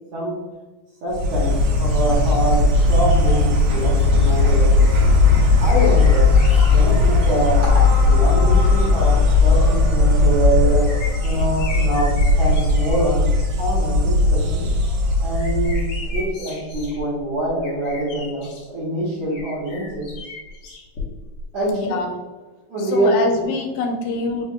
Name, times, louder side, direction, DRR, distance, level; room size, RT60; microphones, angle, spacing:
voice 1, 1.0-4.8 5.6-6.3 6.7-9.1 9.4-10.9 11.2-13.3 13.6-14.7 15.2-20.1 21.5-22.0 22.7-23.4, right 1 dB, 65° right, -6 dB, 1.8 m, -24 dB
Insect, 1.1-16.2, left 3 dB, 90° right, 1.6 m, -17 dB
sound 1, 5.6-7.7 8.6-8.7 10.2-13.1 13.5-13.9 14.3-18.7 19.3-21.5 21.7-21.8, left 2 dB, 70° left, 1.4 m, -35 dB
voice 2, 21.7-22.1 22.9-24.5, left 3 dB, 90° left, 3 dB, 2.4 m, -24 dB
5.3 x 2.8 x 2.2 m, 1.2 s
omnidirectional pair, 4.1 m